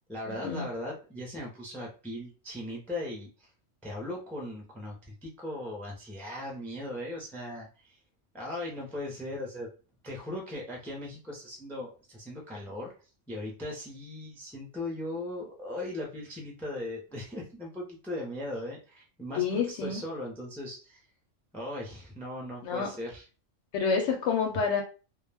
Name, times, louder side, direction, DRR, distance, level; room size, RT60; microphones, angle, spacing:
voice 1, 0.1-3.5 3.8-8.0 8.3-9.7 10.0-12.9 13.3-21.0 21.5-23.3, left 1 dB, ahead, -1 dB, 0.4 m, -38 dB
voice 2, 19.4-20.0 22.6-22.9 23.7-24.8, left 5 dB, 80° left, 2 dB, 0.9 m, -28 dB
2.3 x 2.1 x 3.2 m, 0.34 s
omnidirectional pair, 1.3 m